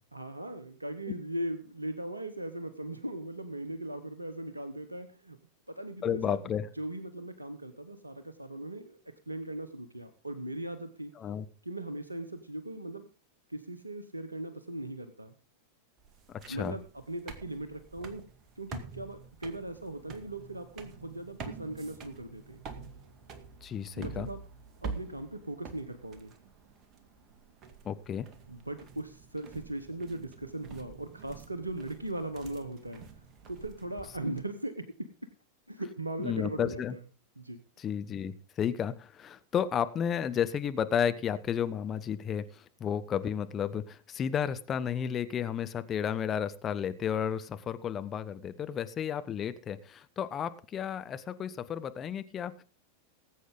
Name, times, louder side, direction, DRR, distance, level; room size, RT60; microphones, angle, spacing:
voice 1, 0.1-5.4 5.7-9.0 9.3-11.1 11.6-13.0 13.5-15.3 16.5-18.2 18.6-22.6 24.0-24.4 24.8-26.3 28.5-33.0 33.5-35.3 35.7-37.0 37.4-37.6, right 1 dB, 85° right, 11 dB, 1.0 m, -39 dB
voice 2, 6.0-6.7 11.2-11.5 16.5-16.7 23.6-24.3 27.8-28.3 36.2-36.9 37.8-52.6, left 8 dB, 25° left, 11 dB, 0.9 m, -32 dB
sound 1, 16.0-34.4, right 5 dB, 35° right, 1.9 m, -47 dB
19.5 x 8.4 x 3.9 m, 0.36 s
figure-of-eight pair, 90°, 0 cm